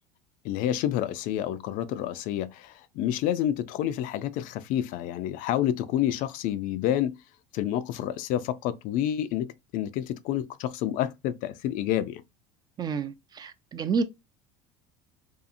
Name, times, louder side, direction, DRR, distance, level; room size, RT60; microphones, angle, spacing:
voice 1, 0.4-7.1 7.5-12.2, left 11 dB, 60° left, 0.4 m, -29 dB
voice 2, 12.8-14.0, right 5 dB, 25° right, 0.3 m, -29 dB
2.7 x 2.4 x 2.5 m
supercardioid pair, 120°, 16 cm